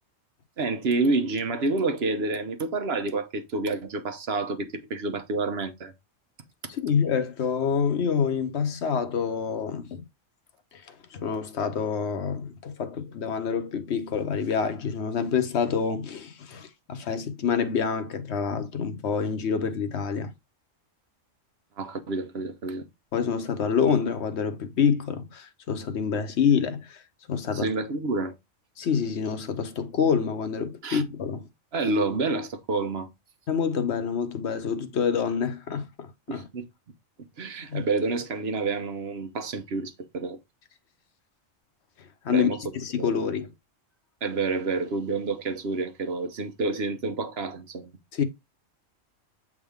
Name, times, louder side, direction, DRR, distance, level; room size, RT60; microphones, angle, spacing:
voice 1, 0.6-5.9 21.8-22.9 27.5-28.3 30.8-31.0 31.7-33.1 36.3-36.6 37.4-40.4 42.3-42.6 43.0-43.2 44.2-47.9, right 3 dB, 55° right, 1.1 m, -28 dB
voice 2, 6.7-10.0 10.7-20.3 23.1-27.0 27.3-27.7 28.8-31.5 33.5-36.4 37.7-37.8 42.0-43.5 48.1-48.2, left 6 dB, 60° left, 1.1 m, -27 dB
8.1 x 3.7 x 3.5 m
omnidirectional pair, 1.3 m